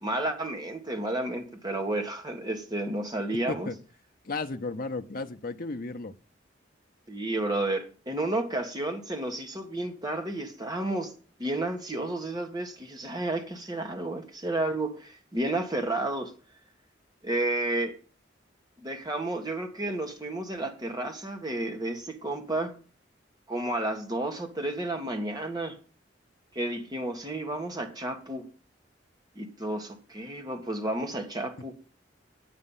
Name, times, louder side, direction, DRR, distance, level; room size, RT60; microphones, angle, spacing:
voice 1, 0.0-3.7 7.1-11.1 11.4-16.3 17.2-18.0 18.8-22.7 23.5-25.8 26.5-28.5 29.3-31.7, right 2 dB, 20° right, 1.6 m, -31 dB
voice 2, 4.2-6.1, left 3 dB, 50° left, 0.7 m, -34 dB
8.8 x 8.5 x 5.6 m
head